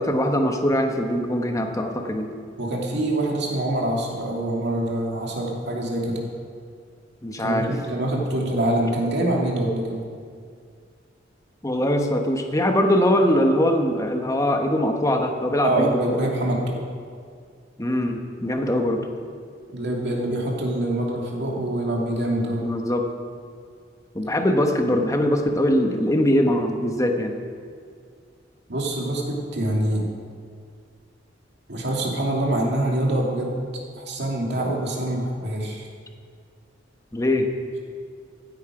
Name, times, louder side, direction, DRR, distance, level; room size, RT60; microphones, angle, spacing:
voice 1, 0.0-2.3 7.2-7.7 11.6-16.2 17.8-19.1 22.6-23.1 24.1-27.4 37.1-37.5, left 1 dB, 20° left, 4 dB, 1.1 m, -22 dB
voice 2, 2.6-6.2 7.4-10.0 15.6-16.8 19.7-22.6 28.7-30.0 31.7-33.7 34.0-35.9, right 1 dB, 65° right, -1 dB, 2.4 m, -25 dB
16.0 x 9.5 x 5.0 m, 2.2 s
head